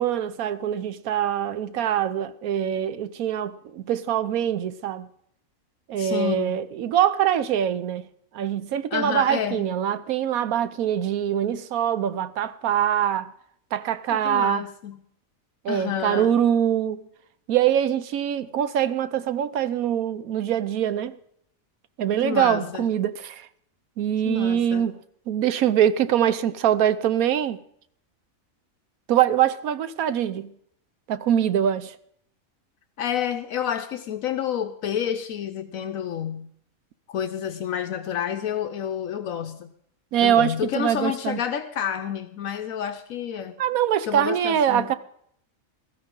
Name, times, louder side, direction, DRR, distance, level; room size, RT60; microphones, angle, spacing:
voice 1, 0.0-5.1 5.9-8.1 8.3-13.3 13.7-14.7 15.6-17.0 17.5-21.1 22.0-23.5 24.0-24.9 25.3-27.6 29.1-30.5 31.1-32.0 40.1-41.4 43.6-45.0, right 10 dB, 90° right, 1.2 m, -23 dB
voice 2, 6.0-6.6 8.9-9.7 14.1-15.0 15.7-16.4 22.2-22.9 24.2-24.9 33.0-36.5 37.1-39.7 40.2-43.5 44.1-44.9, left 9 dB, 75° left, 1.1 m, -29 dB
16.0 x 14.0 x 3.7 m
omnidirectional pair, 1.5 m